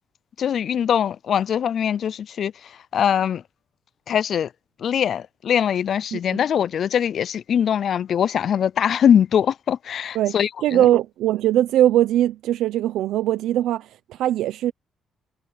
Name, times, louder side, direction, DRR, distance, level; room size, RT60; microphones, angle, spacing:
voice 1, 0.4-3.4 4.1-4.5 4.8-10.9, left 8 dB, 60° left, 0.3 m, -22 dB
voice 2, 10.6-14.7, right 12 dB, 85° right, 0.7 m, -21 dB
cardioid pair, 90°, 0 cm